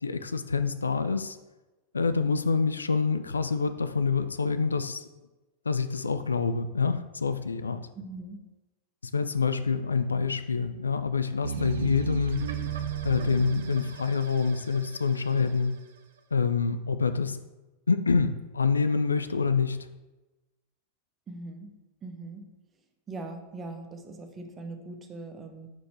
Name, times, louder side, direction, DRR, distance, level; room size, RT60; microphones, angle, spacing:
voice 1, 0.0-1.4 1.9-5.0 5.7-7.8 9.1-12.5 13.0-15.7 16.3-17.4 17.9-19.8, left 5 dB, 75° left, 11 dB, 0.3 m, -26 dB
voice 2, 7.9-8.4 21.3-21.7 22.0-22.4 23.1-25.7, right 2 dB, 20° right, 4 dB, 0.9 m, -41 dB
sound 1, 11.4-15.8, right 8 dB, 60° right, 0.6 m, -35 dB
6.2 x 4.3 x 4.3 m, 1.1 s
figure-of-eight pair, 90°, 0 cm